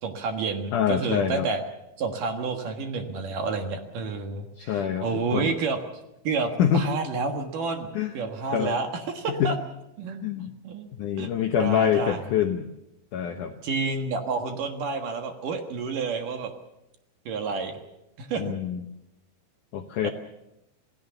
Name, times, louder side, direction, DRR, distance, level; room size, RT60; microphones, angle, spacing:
voice 1, 0.0-1.6 2.0-5.8 6.2-7.9 8.1-9.6 10.0-10.9 11.2-11.3 11.6-12.2 13.6-16.5 17.3-17.8 18.2-18.6 20.0-20.1, right 4 dB, 60° right, 5 dB, 2.7 m, -29 dB
voice 2, 0.7-1.5 4.6-5.6 6.6-6.9 7.9-8.1 8.5-8.8 9.3-9.5 10.2-10.6 11.0-12.7 13.1-13.6 18.4-18.8 19.7-20.1, left 9 dB, 90° left, 6 dB, 1.8 m, -25 dB
27.0 x 17.0 x 7.0 m, 0.89 s
omnidirectional pair, 5.2 m